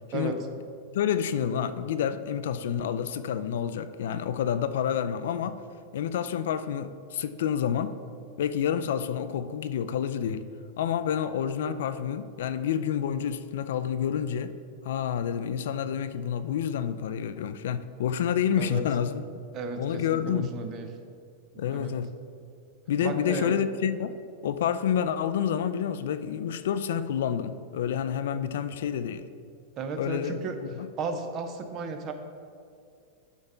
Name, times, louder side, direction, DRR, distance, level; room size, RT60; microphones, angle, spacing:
voice 1, 0.1-0.5 18.6-18.8 19.5-20.9 21.7-21.9 23.0-23.6 29.8-30.6 31.0-32.1, right 4 dB, 25° right, 7 dB, 0.5 m, -34 dB
voice 2, 0.9-5.6 5.9-8.0 8.4-10.5 10.8-14.6 14.8-19.2 19.8-20.5 21.6-22.1 22.9-24.2 24.4-29.3 30.0-30.9, left 8 dB, 70° left, 12 dB, 0.4 m, -29 dB
10.5 x 3.5 x 5.5 m, 2.4 s
supercardioid pair, 175°, 0 cm